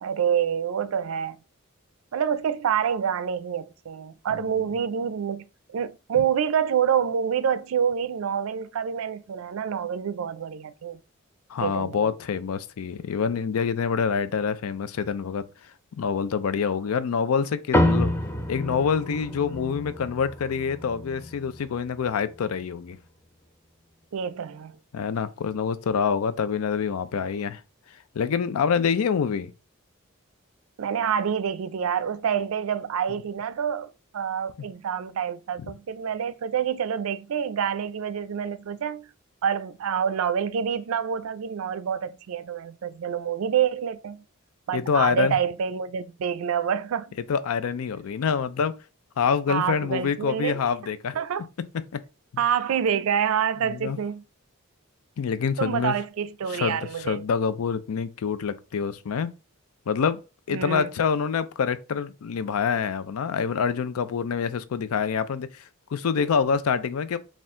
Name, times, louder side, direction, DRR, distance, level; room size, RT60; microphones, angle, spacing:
voice 1, 0.0-1.4 2.1-5.5 5.7-11.0 11.6-12.1 24.1-24.8 30.8-39.1 39.4-44.2 44.7-47.2 49.5-50.6 51.2-51.5 52.4-54.2 55.6-57.2 60.5-60.9, right 8 dB, 75° right, 0.4 m, -27 dB
voice 2, 11.5-15.5 16.0-18.1 18.5-23.0 24.9-27.6 28.1-29.5 44.7-45.3 47.3-48.7 49.2-51.2 51.9-52.0 53.6-54.0 55.2-56.0 56.5-59.3 59.9-60.2 60.5-65.6 65.9-67.2, left 6 dB, 90° left, 0.4 m, -26 dB
sound 1, 17.7-22.5, left 1 dB, 10° left, 0.4 m, -28 dB
4.2 x 2.4 x 3.6 m
head